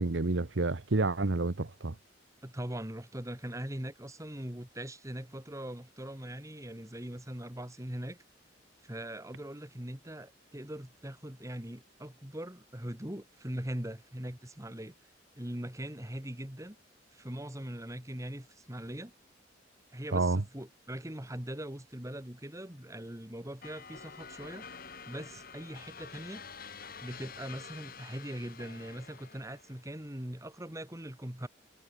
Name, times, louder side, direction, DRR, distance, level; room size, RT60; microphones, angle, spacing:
voice 1, 0.0-1.9 20.1-20.4, right 3 dB, 75° right, 1.0 m, -29 dB
voice 2, 2.4-8.2 8.8-14.9 15.4-16.8 17.1-19.1 19.9-24.7 25.1-26.4 27.0-31.5, right 1 dB, 15° right, 2.4 m, -41 dB
sound 1, 23.6-29.8, left 5 dB, 50° left, 7.1 m, -48 dB
head